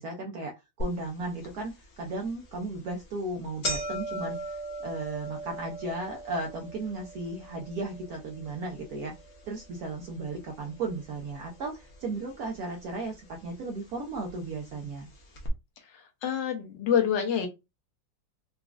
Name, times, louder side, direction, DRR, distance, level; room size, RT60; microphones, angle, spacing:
voice 1, 0.0-9.1 9.5-15.1, right 2 dB, 75° right, 1 dB, 0.9 m, -35 dB
sound 1, 0.8-0.9 1.4-1.5 2.4-2.6 2.9-3.0 3.2-11.5 11.7-12.5 13.3-13.4 14.3-14.4 14.7-14.8 15.3-15.5, right 1 dB, 55° left, 1.1 m, -39 dB
voice 2, 16.2-17.5, left 8 dB, 70° left, 4 dB, 1.4 m, -26 dB
4.0 x 2.3 x 2.3 m, 0.24 s
omnidirectional pair, 2.1 m